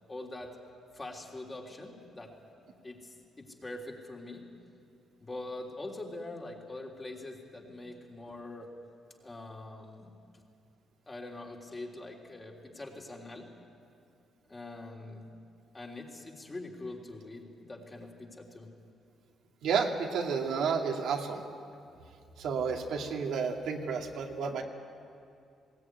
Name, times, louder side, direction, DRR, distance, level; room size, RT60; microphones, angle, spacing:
voice 1, 0.1-0.5 0.9-2.3 2.8-4.4 5.2-8.7 9.2-10.1 11.1-13.5 14.5-15.2 15.7-18.7, left 2 dB, 25° left, -1 dB, 3.4 m, -43 dB
voice 2, 19.6-21.4 22.4-24.6, right 5 dB, 75° right, 1 dB, 2.0 m, -31 dB
20.5 x 17.0 x 9.7 m, 2.5 s
cardioid pair, 90°, 0 cm